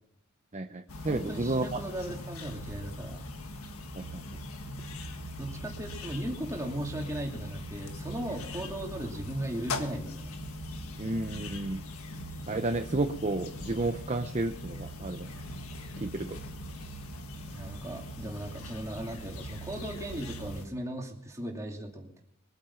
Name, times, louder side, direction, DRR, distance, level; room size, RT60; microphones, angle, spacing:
voice 1, 0.5-1.6 3.9-4.2 11.0-11.8 12.5-15.3 16.0-16.4, right 2 dB, 30° right, 6 dB, 0.8 m, -31 dB
sound 1, 0.9-20.7, left 1 dB, 85° left, 1.6 m, -41 dB
voice 2, 1.1-3.2 5.4-10.3 17.5-22.2, right 1 dB, 15° right, 0 dB, 2.7 m, -37 dB
22.5 x 8.8 x 5.8 m, 0.79 s
head